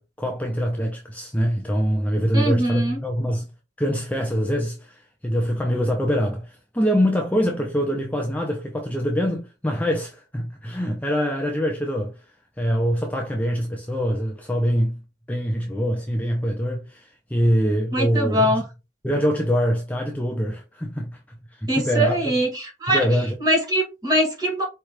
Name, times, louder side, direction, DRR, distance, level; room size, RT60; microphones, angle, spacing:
voice 1, 0.0-3.5 3.8-15.0 15.3-18.5 19.0-22.3 22.9-23.4, equal, 10° left, 0.6 m, -24 dB
voice 2, 2.3-3.0 17.9-18.6 21.7-23.1 23.4-24.6, equal, 20° right, 2.0 m, -22 dB
4.7 x 3.4 x 3.0 m
head